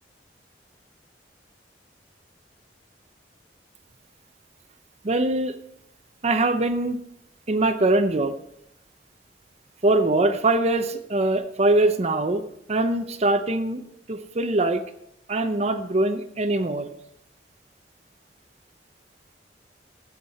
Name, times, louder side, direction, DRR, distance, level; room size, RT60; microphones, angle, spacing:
voice 1, 5.0-5.5 6.2-7.0 7.5-8.3 9.8-12.4 12.7-13.8 14.1-14.8 15.3-16.9, right 2 dB, 40° right, 9 dB, 0.7 m, -22 dB
17.0 x 8.0 x 4.2 m, 0.77 s
head